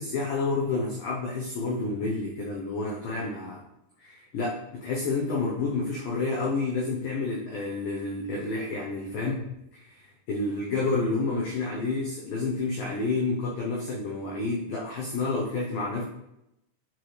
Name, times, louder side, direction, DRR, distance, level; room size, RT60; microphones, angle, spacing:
voice 1, 0.0-3.6 4.0-16.0, left 3 dB, 85° left, -3 dB, 2.0 m, -29 dB
10.0 x 4.8 x 3.2 m, 0.83 s
omnidirectional pair, 5.5 m